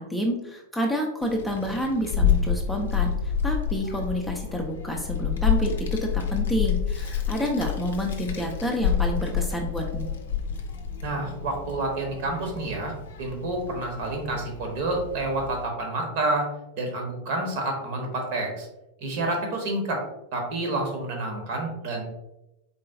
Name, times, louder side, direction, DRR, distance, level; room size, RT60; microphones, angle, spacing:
voice 1, 0.0-10.1, equal, 5° left, 0 dB, 0.5 m, -29 dB
Child speech kid speaking, 1.2-15.6, left 7 dB, 60° left, 0.5 m, -29 dB
voice 2, 11.0-12.9 13.2-16.5 16.7-18.7 19.0-20.0 20.3-22.0, right 2 dB, 50° right, 2 dB, 1.1 m, -29 dB
4.1 x 3.7 x 2.5 m, 0.91 s
figure-of-eight pair, 90°, 0 cm